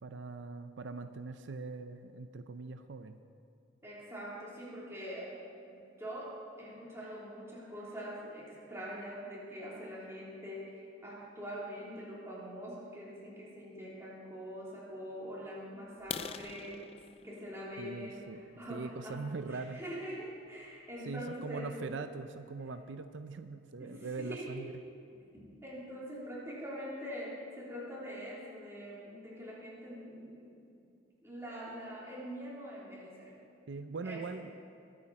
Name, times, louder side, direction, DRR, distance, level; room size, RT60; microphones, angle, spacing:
voice 1, 0.0-3.2 17.8-18.4 18.7-19.8 21.0-24.7 33.7-34.5, right 4 dB, 90° right, 9 dB, 0.5 m, -41 dB
voice 2, 3.8-5.4 5.7-16.9 17.2-19.2 19.5-21.8 23.8-24.6 25.6-30.5 30.8-30.9 31.2-33.3 34.0-34.2, equal, 15° right, -7 dB, 3.5 m, -44 dB
sound 1, 16.0-19.7 20.3-20.5 20.9-21.0 21.5-21.6 21.9-22.0 22.5-22.6 22.8-23.3, left 7 dB, 30° left, 0.3 m, -46 dB
22.0 x 8.9 x 4.3 m, 2.5 s
head